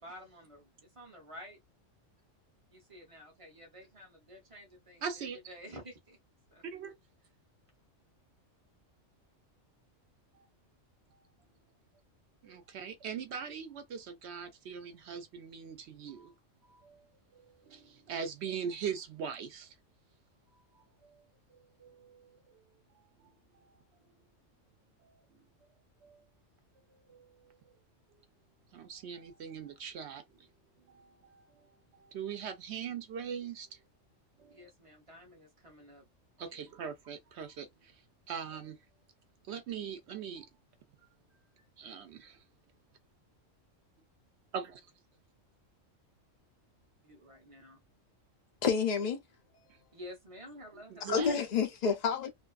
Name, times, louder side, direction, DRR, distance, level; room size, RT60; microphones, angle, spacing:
voice 1, 0.0-1.6 2.7-6.2 6.5-6.6 34.5-36.0 36.5-36.6 47.0-47.8 49.9-51.2, equal, 35° right, 0.6 m, -51 dB
voice 2, 5.0-5.4 6.7-6.9 10.3-10.5 12.4-16.3 16.7-17.0 17.3-19.7 21.8-22.4 23.2-23.8 25.0-25.2 26.0-26.2 27.1-27.6 28.7-30.5 30.9-33.8 34.4-34.7 36.4-37.9 38.3-38.8 39.5-40.5 41.8-42.4 44.5-44.9 50.9-51.4, right 7 dB, 65° right, 0.8 m, -41 dB
voice 3, 48.6-49.2 51.1-52.3, left 6 dB, 70° left, 0.4 m, -29 dB
2.5 x 2.3 x 2.3 m
omnidirectional pair, 1.3 m